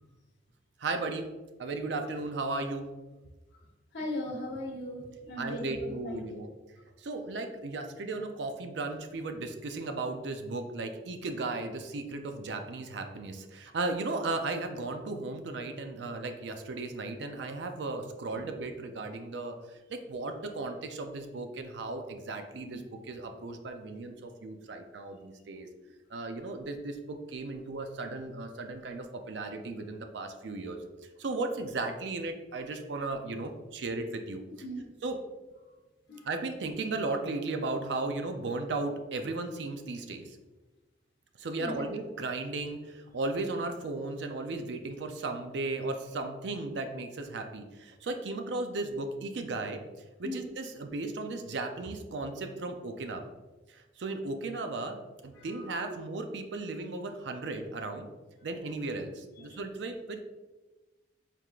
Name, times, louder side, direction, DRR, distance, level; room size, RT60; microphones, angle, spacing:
voice 1, 0.8-1.3 1.6-2.9 5.4-6.5 7.0-19.6 19.9-25.7 26.1-30.8 31.2-34.4 35.0-35.2 36.2-40.4 41.4-49.8 50.2-53.2 53.7-58.1 58.4-60.2, right 3 dB, 65° right, 5 dB, 0.4 m, -35 dB
voice 2, 3.9-6.3 22.7-22.8 34.6-34.9 36.1-36.3 41.6-41.9 50.2-50.5 55.3-55.5 55.8-55.9 58.4-58.5 59.4-59.6, left 1 dB, 65° left, -3 dB, 0.8 m, -38 dB
4.6 x 3.5 x 2.4 m, 1.2 s
head